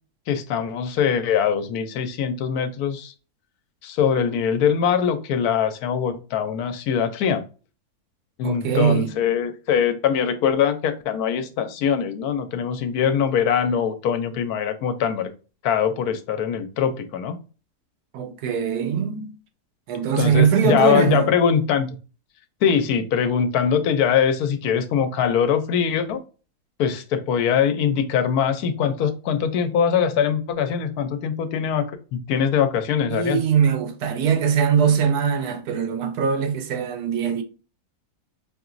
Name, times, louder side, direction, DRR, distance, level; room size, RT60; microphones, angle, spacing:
voice 1, 0.3-3.1 3.8-7.4 8.4-15.3 15.6-17.4 20.2-22.0 22.6-26.2 26.8-33.4, left 7 dB, 75° left, 1.1 m, -22 dB
voice 2, 8.4-9.1 18.1-19.3 19.9-21.3 33.1-37.4, right 7 dB, 80° right, 1.2 m, -21 dB
4.9 x 2.9 x 2.5 m
omnidirectional pair, 1.6 m